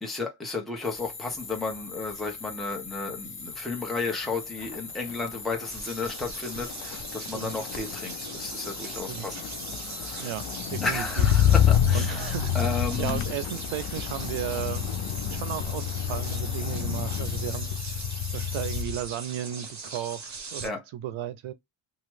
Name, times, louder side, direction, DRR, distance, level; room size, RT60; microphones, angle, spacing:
voice 1, 0.0-9.5 9.9-10.3 10.8-13.2 20.6-20.8, left 3 dB, ahead, 1.0 m, -33 dB
sound 1, 0.8-18.8, left 4 dB, 25° left, 0.9 m, -41 dB
Motor vehicle (road), 3.9-4.3 4.6-19.1 19.4-19.9, left 9 dB, 80° left, 0.6 m, -28 dB
sound 2, 5.6-20.7, right 4 dB, 35° right, 0.9 m, -41 dB
voice 2, 10.2-11.3 11.9-12.5 13.0-14.9 15.3-17.7 18.3-21.5, right 12 dB, 80° right, 0.5 m, -34 dB
2.9 x 2.3 x 3.1 m
cardioid pair, 90°, 49 cm